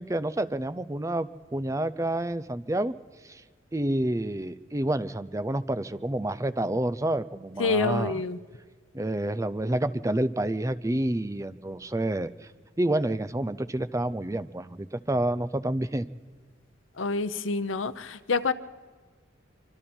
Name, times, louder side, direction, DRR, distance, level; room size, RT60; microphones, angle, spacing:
voice 1, 0.0-2.9 3.2-3.4 3.7-8.2 8.9-12.5 12.8-16.1, right 1 dB, 15° right, 14 dB, 0.5 m, -29 dB
voice 2, 7.6-8.4 17.0-18.5, left 4 dB, 85° left, 11 dB, 0.8 m, -27 dB
25.0 x 24.5 x 4.4 m, 1.5 s
head